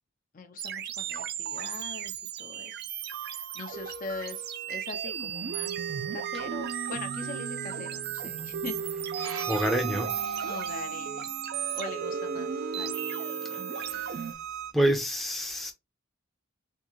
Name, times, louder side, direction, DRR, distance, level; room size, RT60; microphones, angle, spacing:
voice 1, 0.3-2.8 3.2-8.8 9.1-9.5 10.5-11.3 11.8-14.1, left 3 dB, 40° left, 0.5 m, -42 dB
sound 1, 0.6-14.3, right 7 dB, 50° right, 0.4 m, -35 dB
voice 2, 9.2-10.5 13.5-14.3 14.7-15.7, right 1 dB, ahead, 0.6 m, -29 dB
Bowed string instrument, 9.2-14.7, right 9 dB, 85° right, 0.6 m, -39 dB
3.6 x 2.6 x 3.0 m
head